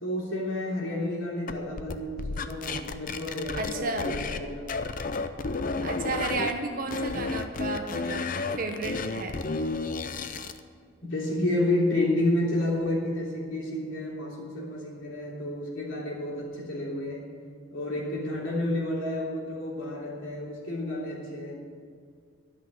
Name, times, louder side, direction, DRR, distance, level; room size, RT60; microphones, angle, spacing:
voice 1, 0.0-4.6 5.4-5.5 11.0-17.3 17.7-21.6, left 1 dB, 70° left, -3 dB, 3.2 m, -30 dB
sound 1, 1.5-4.4 4.7-6.5 6.9-10.6, left 3 dB, 40° left, 0.5 m, -32 dB
voice 2, 3.6-4.2 5.8-9.4, right 3 dB, 45° right, 4 dB, 1.1 m, -33 dB
12.5 x 6.1 x 9.3 m, 2.1 s
head